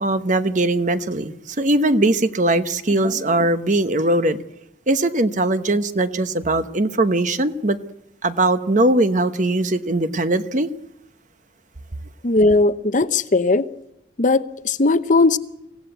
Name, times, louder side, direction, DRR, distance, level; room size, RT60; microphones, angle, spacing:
voice 1, 0.0-4.4 4.9-7.8 8.2-10.7, right 2 dB, 40° right, 1.1 m, -20 dB
voice 2, 12.2-13.7 14.2-15.4, left 3 dB, 40° left, 0.8 m, -18 dB
25.0 x 16.5 x 8.1 m
head